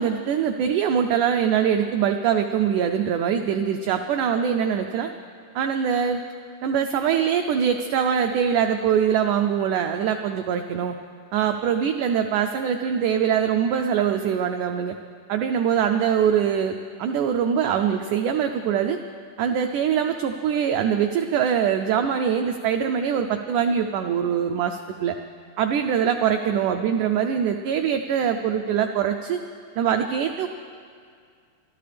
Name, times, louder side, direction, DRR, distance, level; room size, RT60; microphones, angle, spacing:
voice 1, 0.0-5.1 5.6-6.2 6.6-11.0 11.3-15.0 15.3-16.7 17.0-19.0 19.4-25.2 25.6-29.4 29.8-30.5, right 8 dB, 90° right, 6 dB, 1.7 m, -23 dB
25.5 x 13.0 x 3.4 m, 2.1 s
omnidirectional pair, 4.2 m